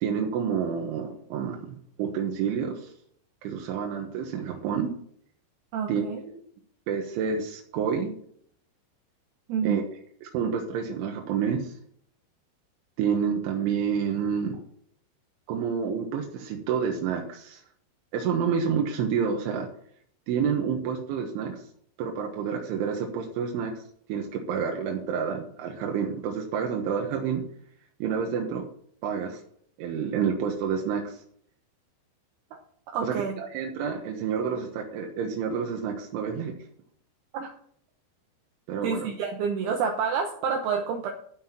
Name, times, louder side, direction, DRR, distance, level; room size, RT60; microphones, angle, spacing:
voice 1, 0.0-2.9 3.4-4.9 5.9-6.4 6.9-8.1 9.6-9.8 10.2-11.8 13.0-14.6 15.5-17.6 18.1-19.7 20.3-21.6 22.0-23.8 24.1-27.5 28.0-28.7 29.0-29.4 29.8-31.2 33.0-36.5 38.7-39.1, right 7 dB, 90° right, 1 dB, 3.7 m, -29 dB
voice 2, 5.7-6.2 9.5-9.8 32.5-32.6 32.9-33.4 37.3-37.5 38.8-41.1, right 6 dB, 75° right, 2 dB, 2.8 m, -28 dB
12.5 x 5.9 x 7.3 m, 0.63 s
omnidirectional pair, 5.3 m